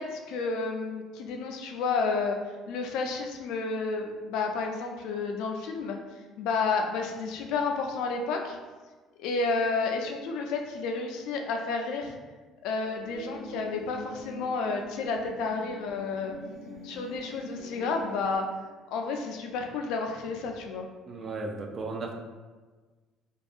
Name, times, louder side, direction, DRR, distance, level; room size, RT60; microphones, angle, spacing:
voice 1, 0.0-2.4 2.7-6.0 6.4-8.6 9.2-12.1 12.6-16.4 16.8-18.4 18.9-20.9, left 4 dB, 80° left, 3 dB, 0.3 m, -31 dB
sound 1, 13.0-18.4, left 1 dB, ahead, 0.7 m, -44 dB
voice 2, 21.1-22.1, right 3 dB, 35° right, 1 dB, 0.3 m, -35 dB
2.6 x 2.2 x 2.4 m, 1.3 s
cardioid pair, 140°, 0 cm